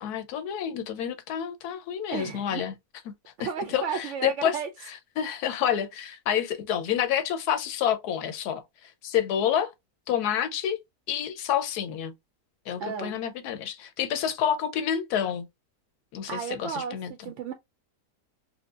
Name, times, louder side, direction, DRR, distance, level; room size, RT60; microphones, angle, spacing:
voice 1, 0.0-2.7 3.4-4.6 4.9-9.7 10.1-10.8 11.1-12.1 12.7-15.5 16.1-17.1, left 9 dB, 85° left, 1.2 m, -28 dB
voice 2, 2.1-2.6 3.4-4.7 12.8-13.2 16.3-17.5, right 6 dB, 70° right, 0.7 m, -33 dB
4.5 x 2.1 x 2.3 m
omnidirectional pair, 1.6 m